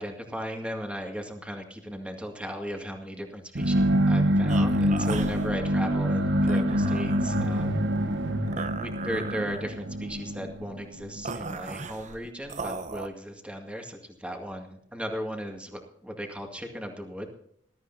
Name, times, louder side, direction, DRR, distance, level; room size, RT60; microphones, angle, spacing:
voice 1, 0.0-7.8 8.6-17.3, equal, 5° right, 3 dB, 2.1 m, -37 dB
sound 1, 3.5-11.3, equal, 70° right, 1.2 m, -25 dB
sound 2, 4.5-13.1, right 4 dB, 40° right, 0.9 m, -38 dB
20.5 x 13.0 x 2.7 m, 0.68 s
head